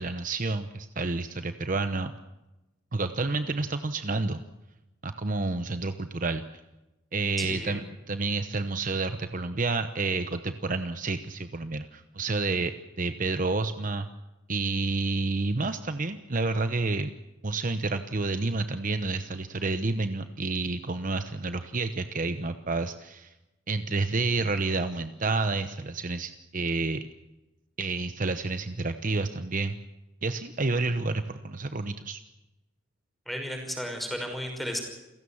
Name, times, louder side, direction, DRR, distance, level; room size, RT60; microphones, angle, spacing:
voice 1, 0.0-2.1 2.9-4.4 5.0-6.4 7.1-7.8 8.1-14.1 14.5-17.1 17.4-23.3 23.7-27.0 27.8-29.8 30.2-32.2, right 3 dB, 45° right, 10 dB, 0.9 m, -29 dB
voice 2, 7.4-7.8 33.3-34.8, equal, ahead, 3 dB, 5.7 m, -34 dB
29.0 x 16.0 x 7.1 m, 1.0 s
head